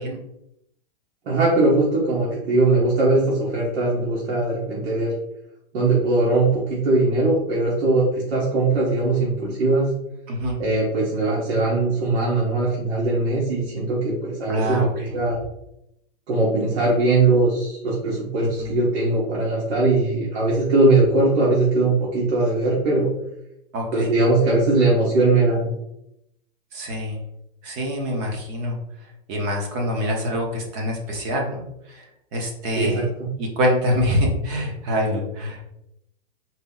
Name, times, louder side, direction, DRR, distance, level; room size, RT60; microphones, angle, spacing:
voice 1, 1.2-5.1 5.7-9.9 10.6-15.4 16.3-23.1 23.9-25.7 32.8-33.3, right 2 dB, 70° right, -5 dB, 1.4 m, -20 dB
voice 2, 10.3-10.6 14.5-15.1 18.4-18.7 23.7-24.1 26.7-27.2 27.6-28.8 29.3-31.6 31.9-32.0 32.3-33.1 33.4-35.6, equal, 30° right, 1 dB, 0.7 m, -25 dB
4.0 x 2.1 x 3.8 m, 0.82 s
supercardioid pair, 165°, 33 cm